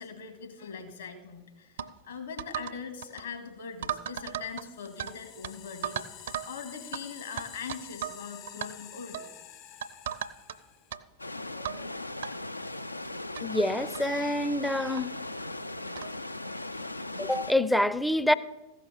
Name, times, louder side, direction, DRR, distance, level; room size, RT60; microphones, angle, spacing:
voice 1, 0.0-9.3, left 6 dB, 70° left, 2.1 m, -42 dB
sound 1, 1.8-1.9 2.4-2.8 3.0-3.2 3.8-5.1 5.4-5.5 5.8-6.5 6.9-7.0 7.4-8.2 8.5-8.7 9.1-9.3 9.8-10.6 10.9-11.0 11.7-11.8 12.2-12.3 13.1-13.2 13.4-13.5 13.9-14.1 15.0-15.1 16.0-16.2, right 9 dB, 60° right, 0.5 m, -35 dB
sound 2, 4.2-11.0, left 10 dB, 45° left, 0.9 m, -49 dB
sound 3, 11.2-17.5, left 2 dB, 85° left, 0.3 m, -38 dB
voice 2, 13.4-15.1 17.2-18.3, left 1 dB, 5° left, 0.4 m, -26 dB
15.0 x 5.9 x 7.1 m
figure-of-eight pair, 90°, 0 cm